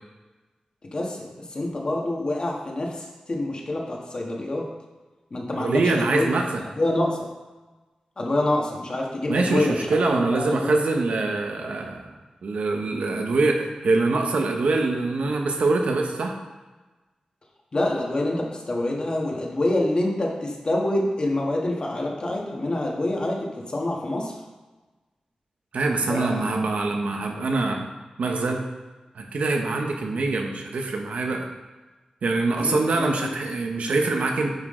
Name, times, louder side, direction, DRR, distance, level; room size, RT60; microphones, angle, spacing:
voice 1, 0.9-1.2 1.5-4.7 5.3-6.3 6.8-7.3 8.2-10.7 17.7-24.3 26.1-26.5 32.6-33.3, left 1 dB, 45° left, -1 dB, 1.6 m, -26 dB
voice 2, 5.6-6.6 9.3-12.1 12.4-16.4 25.7-27.9 28.2-28.6 29.1-31.5 32.2-34.5, right 3 dB, 85° right, 2 dB, 1.1 m, -24 dB
9.5 x 6.0 x 3.8 m, 1.2 s
wide cardioid pair, 105°, 2 cm